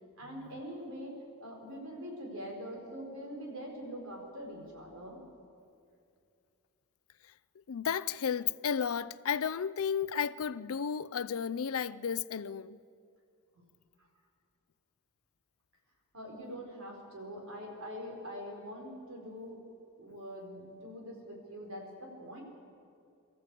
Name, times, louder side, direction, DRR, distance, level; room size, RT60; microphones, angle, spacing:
voice 1, 0.2-1.1 1.4-5.2 13.5-13.7 16.1-19.6 20.0-22.4, equal, 70° right, 4.7 m, -43 dB
voice 2, 7.7-12.8, left 7 dB, 70° left, 0.5 m, -33 dB
24.0 x 14.0 x 8.3 m
head